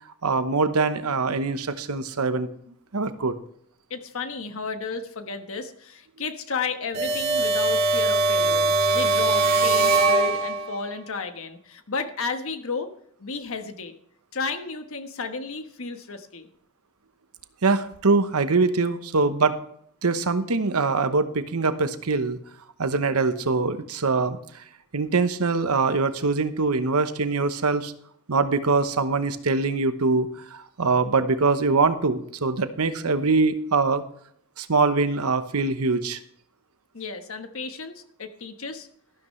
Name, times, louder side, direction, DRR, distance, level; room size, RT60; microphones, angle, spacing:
voice 1, 0.2-2.5 2.9-3.4 17.6-19.6 20.0-22.4 22.8-24.4 24.9-27.9 28.3-34.0 34.6-36.2, right 4 dB, 85° right, 10 dB, 1.0 m, -23 dB
voice 2, 3.9-12.9 13.2-13.9 14.3-16.5 36.9-38.9, left 4 dB, 65° left, 7 dB, 1.3 m, -33 dB
sound 1, 6.9-10.8, right 3 dB, 45° right, 2.1 m, -21 dB
13.5 x 12.0 x 3.2 m, 0.65 s
head